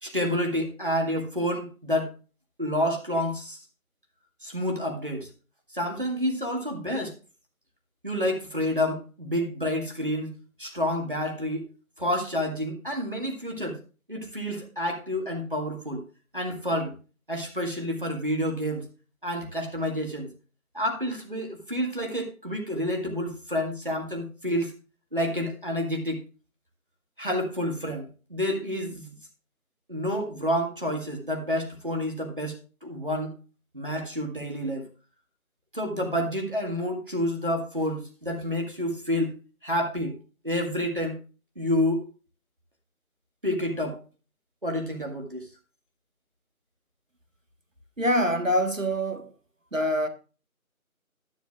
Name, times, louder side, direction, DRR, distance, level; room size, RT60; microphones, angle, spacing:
voice 1, 0.0-2.1 2.6-3.7 4.4-5.3 5.7-7.1 8.0-10.3 10.6-11.7 12.0-13.8 14.1-16.0 16.3-16.9 17.3-18.9 19.2-20.3 20.7-24.7 25.1-26.2 27.2-29.2 29.9-33.3 33.7-34.9 35.7-39.3 39.6-40.2 40.4-41.2 41.6-42.0 43.4-44.0 44.6-45.5, equal, 35° right, 1.9 m, -29 dB
voice 2, 48.0-49.3 49.7-50.1, equal, 65° right, 1.5 m, -25 dB
12.0 x 10.5 x 2.4 m
figure-of-eight pair, 175°, 43 cm